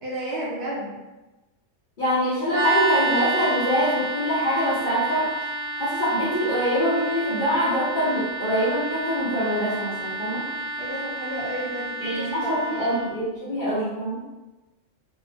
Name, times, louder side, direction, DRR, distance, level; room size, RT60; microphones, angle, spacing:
voice 1, 0.0-1.0 10.8-13.0, right 1 dB, 65° right, -6 dB, 0.7 m, -32 dB
voice 2, 2.0-5.3 5.8-10.4 12.0-14.2, equal, 50° left, -9 dB, 0.7 m, -24 dB
sound 1, 2.5-13.1, right 3 dB, 30° right, 0.4 m, -30 dB
2.8 x 2.1 x 2.6 m, 1.1 s
omnidirectional pair, 1.4 m